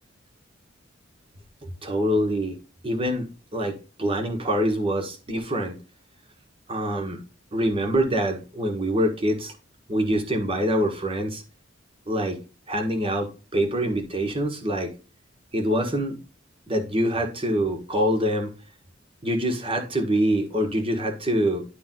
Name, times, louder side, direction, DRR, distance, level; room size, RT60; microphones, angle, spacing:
voice 1, 1.6-2.6 2.8-5.8 6.7-7.2 7.5-9.5 9.9-11.4 12.1-12.4 12.7-14.9 15.5-16.2 16.7-18.5 19.2-21.6, equal, 25° right, 3 dB, 1.4 m, -25 dB
10.5 x 3.6 x 3.8 m, 0.33 s
head